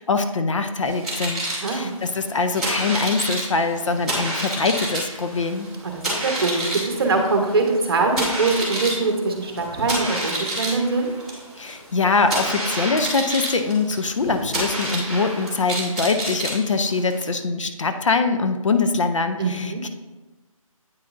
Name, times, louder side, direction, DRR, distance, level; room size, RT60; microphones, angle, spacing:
voice 1, 0.0-5.7 11.6-19.9, left 4 dB, 60° left, 7 dB, 0.6 m, -23 dB
sound 1, 0.8-17.3, right 1 dB, ahead, 1.4 m, -29 dB
voice 2, 1.4-1.9 5.8-11.1 19.4-19.8, right 3 dB, 45° right, 3 dB, 1.1 m, -23 dB
8.8 x 5.7 x 2.6 m, 1.2 s
figure-of-eight pair, 165°, 18 cm